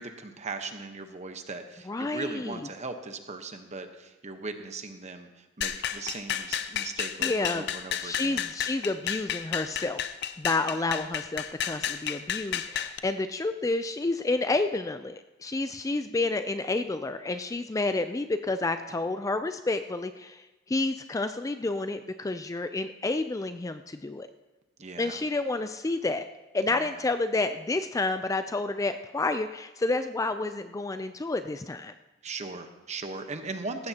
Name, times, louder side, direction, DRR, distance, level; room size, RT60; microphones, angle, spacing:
voice 1, 0.0-8.5 10.5-10.9 24.8-25.2 26.6-27.0 32.2-33.9, right 3 dB, 35° right, 7 dB, 1.1 m, -39 dB
voice 2, 1.9-2.7 7.2-7.7 8.0-10.0 10.4-24.3 25.0-26.3 26.5-31.9, left 2 dB, 15° left, 9 dB, 0.4 m, -30 dB
sound 1, 5.6-13.0, left 9 dB, 60° left, 0.6 m, -32 dB
18.0 x 15.0 x 2.9 m, 1.1 s
head